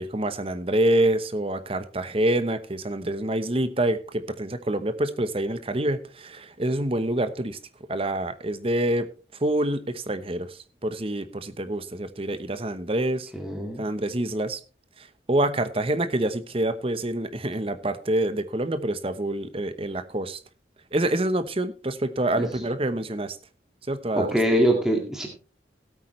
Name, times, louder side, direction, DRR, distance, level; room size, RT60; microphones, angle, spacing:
voice 1, 0.0-7.6 7.9-9.1 9.4-13.3 13.8-14.6 15.0-20.4 20.9-23.4 23.9-24.3, right 1 dB, 30° right, 11 dB, 0.9 m, -26 dB
voice 2, 13.3-13.9 22.3-22.5 24.2-25.3, equal, 5° right, 1 dB, 1.9 m, -23 dB
16.5 x 8.7 x 3.2 m, 0.35 s
head